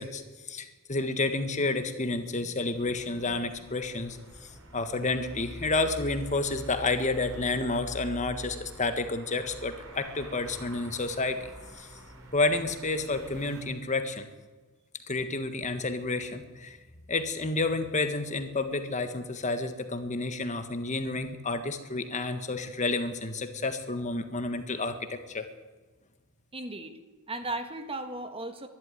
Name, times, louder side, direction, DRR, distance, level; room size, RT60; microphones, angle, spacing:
voice 1, 0.0-11.9 12.3-14.3 15.1-16.8 17.1-25.5, left 3 dB, 35° left, 8 dB, 1.5 m, -30 dB
sound 1, 2.7-13.6, equal, 65° right, 4.6 m, -45 dB
voice 2, 26.5-27.0 27.3-28.7, right 2 dB, 25° right, 8 dB, 1.7 m, -36 dB
22.5 x 12.0 x 9.8 m, 1.3 s
head